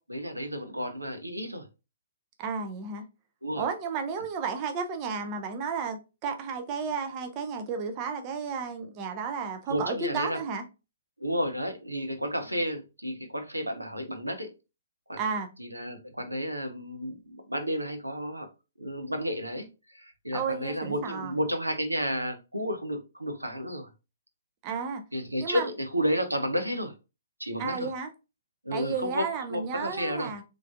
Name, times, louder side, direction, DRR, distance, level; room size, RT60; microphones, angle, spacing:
voice 1, 0.1-1.7 3.4-3.6 9.7-10.4 11.2-14.5 15.1-15.2 15.6-18.5 18.8-23.9 25.1-26.9 27.4-27.9 28.6-30.3, equal, 90° right, 0.8 m, -32 dB
voice 2, 2.4-3.0 3.6-10.6 15.2-15.5 20.3-21.3 24.6-25.0 25.4-25.7 27.6-28.1 28.7-30.4, right 5 dB, 30° right, 0.5 m, -32 dB
3.7 x 3.2 x 2.5 m
figure-of-eight pair, 125°, 0 cm